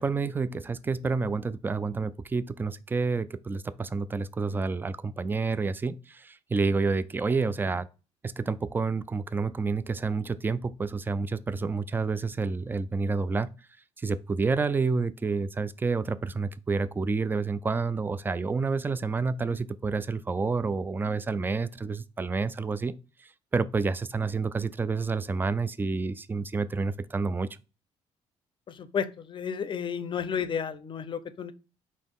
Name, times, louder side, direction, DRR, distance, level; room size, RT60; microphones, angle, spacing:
voice 1, 0.0-7.9 8.2-13.5 14.0-27.5, right 4 dB, 15° right, 0.3 m, -29 dB
voice 2, 28.7-31.5, left 7 dB, 40° left, 0.6 m, -32 dB
4.2 x 3.1 x 3.5 m
cardioid pair, 100°, 12 cm